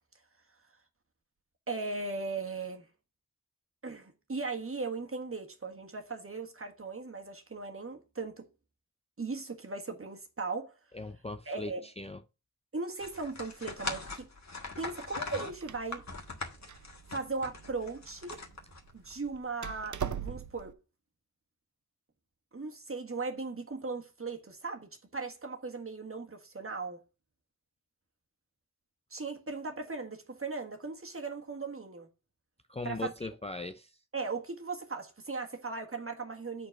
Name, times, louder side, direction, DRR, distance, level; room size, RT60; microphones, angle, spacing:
voice 1, 1.7-2.9 3.8-8.5 9.2-10.7 11.4-11.9 12.7-14.3 14.8-16.0 17.1-18.4 18.9-20.7 22.5-27.0 29.1-32.1 32.8-33.1 34.1-36.7, right 3 dB, 35° right, 1.6 m, -38 dB
voice 2, 10.9-12.2 32.7-33.9, left 2 dB, 20° left, 0.5 m, -39 dB
sound 1, 13.0-19.1, left 3 dB, 50° left, 1.7 m, -41 dB
Door, 15.1-20.7, right 8 dB, 55° right, 0.6 m, -42 dB
7.6 x 4.3 x 5.8 m
wide cardioid pair, 75°, 36 cm